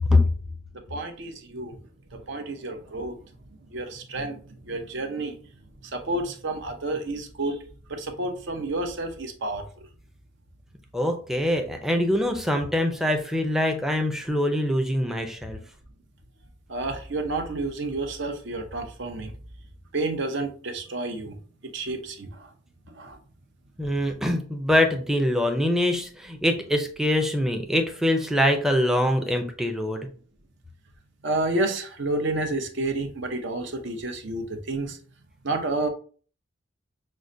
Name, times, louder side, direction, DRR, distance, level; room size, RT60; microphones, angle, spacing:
voice 1, 0.9-1.8 2.1-3.2 3.7-5.4 5.9-7.6 7.9-9.6 16.7-19.3 19.9-21.4 21.6-22.5 22.9-23.2 31.2-35.0 35.4-35.9, right 2 dB, 60° right, 6 dB, 0.7 m, -30 dB
voice 2, 10.9-15.6 23.8-30.1, left 1 dB, ahead, 3 dB, 0.5 m, -24 dB
6.1 x 2.2 x 2.6 m, 0.42 s
head